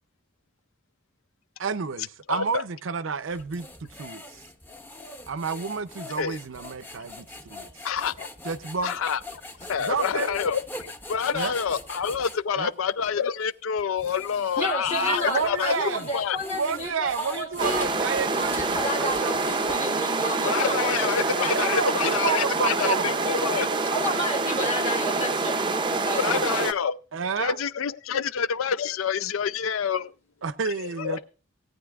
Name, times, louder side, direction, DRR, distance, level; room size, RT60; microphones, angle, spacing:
voice 1, 1.6-4.4 5.3-7.7 8.4-8.9 9.8-10.4 11.3-11.6 12.6-12.7 15.0-16.1 16.5-19.3 21.6-23.2 27.1-27.6 28.1-28.2 30.4-31.2, right 5 dB, 70° right, 0.6 m, -30 dB
voice 2, 2.3-2.6 6.2-6.4 7.8-8.3 8.8-9.2 9.7-16.4 20.4-23.8 26.2-27.0 27.4-30.1 30.7-31.2, left 7 dB, 85° left, 0.5 m, -27 dB
sound 1, 3.3-12.4 13.0-13.1 13.8-20.0, left 2 dB, 10° left, 0.7 m, -42 dB
voice 3, 14.6-17.9 18.3-21.7 23.9-26.3, left 1 dB, 30° left, 1.2 m, -31 dB
sound 2, 17.6-26.7, right 3 dB, 20° right, 0.5 m, -26 dB
18.0 x 9.3 x 2.4 m
head